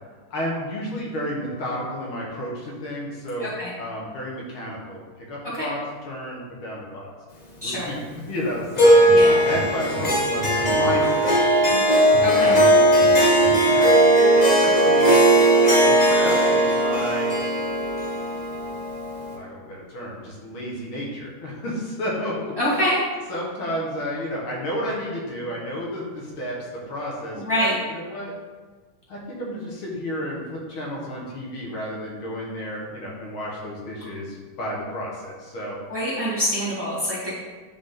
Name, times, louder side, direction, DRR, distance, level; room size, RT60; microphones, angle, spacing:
voice 1, 0.3-3.5 3.8-7.1 7.6-8.0 8.3-9.0 9.4-11.8 12.3-12.7 13.7-13.9 14.4-15.2 15.8-17.3 19.3-22.6 23.3-26.6 26.9-28.3 29.1-35.8, equal, 70° left, -4 dB, 2.2 m, -32 dB
voice 2, 3.4-3.7 5.5-5.7 7.6-7.9 9.1-9.4 12.2-12.6 22.6-23.0 27.5-27.8 35.9-37.3, equal, 10° right, -9 dB, 1.8 m, -25 dB
Harp, 8.8-19.3, right 1 dB, 50° left, 0.4 m, -18 dB
sound 1, 8.8-11.8 12.1-13.7, left 1 dB, 70° right, 2.4 m, -35 dB
9.5 x 3.7 x 3.8 m, 1.4 s
omnidirectional pair, 2.4 m